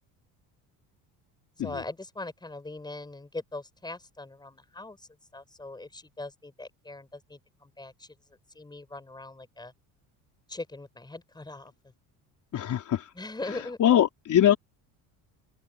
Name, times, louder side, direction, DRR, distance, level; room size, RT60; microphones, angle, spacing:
voice 1, 1.6-5.1 5.3-8.2 8.5-9.7 10.5-11.7 13.1-13.8, left 2 dB, 10° left, 4.7 m, -41 dB
voice 2, 12.5-13.1 13.8-14.6, left 11 dB, 45° left, 4.2 m, -22 dB
open air
cardioid pair, 125°, 40 cm